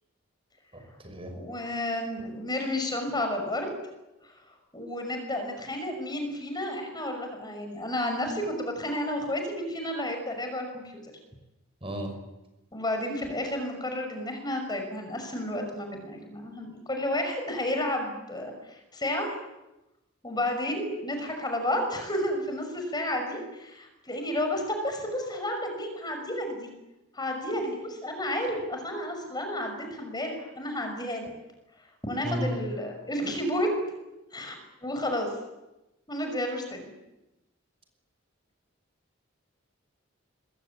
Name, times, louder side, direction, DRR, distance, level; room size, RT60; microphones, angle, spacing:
voice 1, 0.7-1.3 11.8-12.1 32.2-32.6, equal, 30° right, 5 dB, 5.9 m, -33 dB
voice 2, 1.3-3.7 4.7-11.0 12.7-19.3 20.2-26.7 27.1-31.3 32.0-33.7 34.3-35.3 36.1-36.9, left 1 dB, 20° left, 5 dB, 5.9 m, -31 dB
26.5 x 22.5 x 8.6 m, 0.97 s
head